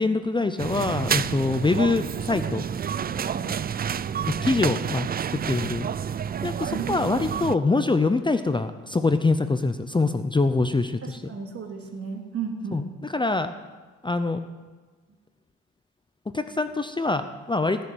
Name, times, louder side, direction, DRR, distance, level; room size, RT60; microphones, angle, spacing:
voice 1, 0.0-2.7 4.4-5.9 6.4-11.3 12.7-13.5 14.0-14.4 16.3-17.8, left 3 dB, 15° left, 9 dB, 0.7 m, -24 dB
sound 1, 0.6-7.6, right 8 dB, 30° right, 0.4 m, -29 dB
voice 2, 3.0-3.6 6.7-7.4 11.0-12.9, right 5 dB, 50° right, 2 dB, 2.8 m, -35 dB
18.5 x 6.9 x 9.2 m, 1.3 s
cardioid pair, 90°, 30 cm